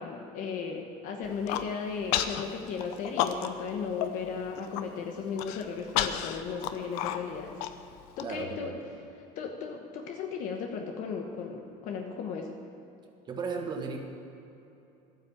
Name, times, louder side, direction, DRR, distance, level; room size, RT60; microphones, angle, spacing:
voice 1, 0.0-7.6 8.2-8.8 9.3-12.6, left 6 dB, 50° left, 3 dB, 1.1 m, -36 dB
Human voice, 1.2-1.7 2.1-2.4 2.8-3.7 4.0-4.1 4.5-4.8 5.4-8.2, left 11 dB, 70° left, 0.8 m, -31 dB
voice 2, 8.2-8.8 13.3-14.0, right 5 dB, 25° right, 3 dB, 1.6 m, -35 dB
12.0 x 9.6 x 7.3 m, 2.9 s
cardioid pair, 155°, 16 cm